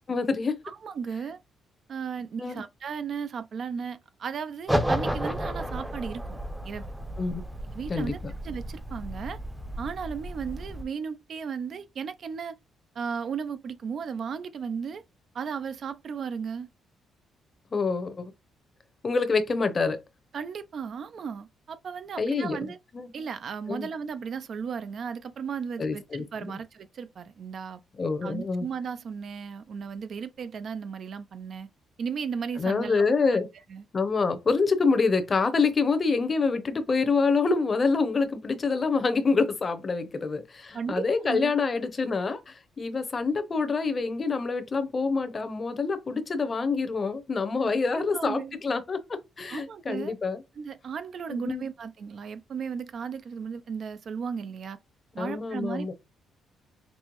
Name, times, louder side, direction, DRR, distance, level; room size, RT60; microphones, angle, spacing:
voice 1, 0.1-0.5 2.4-2.6 7.2-7.4 7.9-8.1 17.7-18.3 19.0-20.0 22.2-22.7 22.9-23.0 23.7-23.9 25.8-26.5 28.0-28.7 32.6-33.5 33.9-50.4 51.3-51.7 55.2-55.9, left 4 dB, 35° left, 0.7 m, -26 dB
voice 2, 0.6-1.4 1.9-6.4 6.6-6.8 7.7-8.2 8.4-9.4 9.8-12.6 13.0-15.0 15.3-16.7 20.3-22.8 23.1-27.8 28.2-31.7 32.0-33.0 33.3-33.4 33.7-33.8 40.7-41.5 47.9-48.6 49.5-50.1 50.6-54.8 55.1-55.9, right 6 dB, 55° right, 0.4 m, -35 dB
sound 1, 4.7-10.8, equal, 5° right, 0.6 m, -32 dB
5.3 x 2.0 x 3.0 m
cardioid pair, 90°, 0 cm